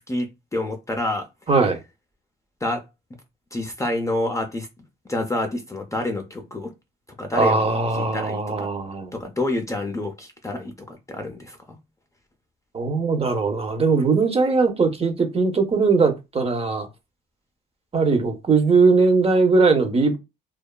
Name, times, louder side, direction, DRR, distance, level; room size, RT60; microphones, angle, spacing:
voice 1, 0.0-1.3 2.6-2.9 3.5-4.7 5.1-6.7 7.2-8.7 9.1-11.8, left 1 dB, 15° left, 0.5 m, -28 dB
voice 2, 1.5-1.8 7.3-9.1 12.7-16.9 17.9-20.2, right 4 dB, 30° right, 0.6 m, -20 dB
2.7 x 2.3 x 2.2 m
cardioid pair, 90°, 20 cm